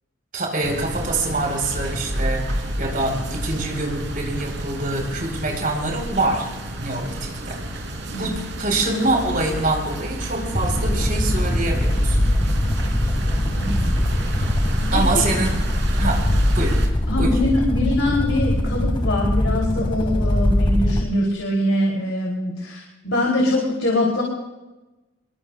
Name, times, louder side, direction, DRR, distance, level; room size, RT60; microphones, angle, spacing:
voice 1, 0.3-6.5 6.8-7.6 8.2-12.2 14.9-15.5 15.9-16.2 16.5-16.8 17.2-17.4, right 2 dB, 45° right, 1 dB, 4.5 m, -25 dB
sound 1, 0.6-16.9, right 1 dB, 65° right, 3.3 m, -31 dB
voice 2, 8.1-8.4 13.6-13.9 14.8-15.3 17.1-24.2, left 1 dB, 85° left, -1 dB, 3.4 m, -23 dB
sound 2, 10.4-21.1, left 1 dB, 25° left, 2.1 m, -21 dB
26.0 x 22.5 x 2.5 m, 1.1 s
head